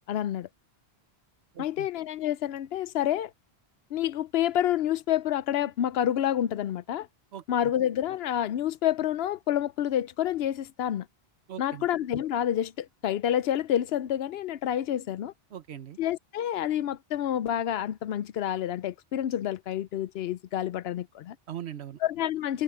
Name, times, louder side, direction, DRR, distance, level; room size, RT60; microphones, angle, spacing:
voice 1, 0.1-0.5 1.6-3.3 3.9-7.1 7.5-11.1 11.6-15.3 16.0-21.4 22.0-22.6, left 11 dB, 75° left, 0.8 m, -28 dB
voice 2, 1.5-1.9 7.3-7.7 11.5-11.9 15.5-16.0 21.5-22.0, right 10 dB, 85° right, 1.2 m, -40 dB
omnidirectional pair, 1.1 m